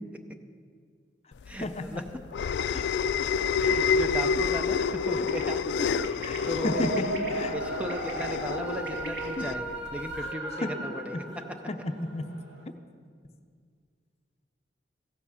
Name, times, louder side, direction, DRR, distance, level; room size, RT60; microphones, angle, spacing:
sound 1, 1.5-10.3, left 5 dB, 70° left, 0.3 m, -29 dB
voice 1, 1.6-2.0 2.7-2.9 3.8-4.0 5.8-5.9 6.2-7.5 9.4-9.5 10.6-10.7 11.7-12.3, left 1 dB, 35° left, 7 dB, 0.6 m, -33 dB
sound 2, 3.4-9.3, right 1 dB, 65° right, 2.2 m, -47 dB
voice 2, 3.6-5.6 5.9-6.0 6.3-6.8 7.5-11.2, equal, 5° right, 6 dB, 0.5 m, -36 dB
sound 3, 6.6-12.6, right 2 dB, 85° right, 1.7 m, -36 dB
15.5 x 8.7 x 5.6 m, 2.1 s
head